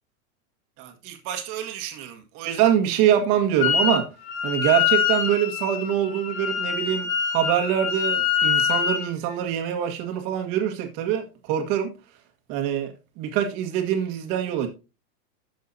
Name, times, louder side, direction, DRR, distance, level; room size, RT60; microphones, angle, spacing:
voice 1, 0.8-4.1 4.4-11.9 12.5-14.7, right 10 dB, 30° right, 1.7 m, -24 dB
Wind instrument woodwind instrument, 3.6-4.0 4.3-9.1, left 8 dB, 55° left, 1.9 m, -24 dB
12.0 x 7.8 x 2.7 m
supercardioid pair, 175°, 41 cm